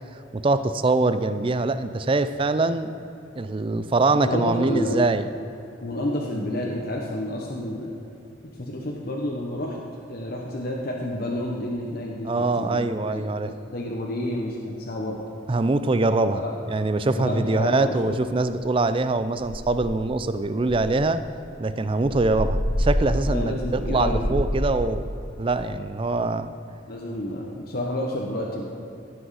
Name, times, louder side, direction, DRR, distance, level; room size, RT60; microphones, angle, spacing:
voice 1, 0.3-2.9 3.4-5.3 12.2-13.5 15.5-21.2 21.6-25.0 25.4-26.5, right 2 dB, 25° right, 11 dB, 0.4 m, -23 dB
voice 2, 4.1-5.1 5.8-7.9 8.6-9.8 10.1-12.3 12.6-15.2 16.3-16.6 17.2-18.2 23.3-24.3 26.9-28.7, left 1 dB, 50° left, -1 dB, 1.0 m, -30 dB
sound 1, 19.4-20.1 20.6-24.8, equal, 35° left, 1.7 m, -28 dB
15.5 x 6.2 x 4.8 m, 2.8 s
head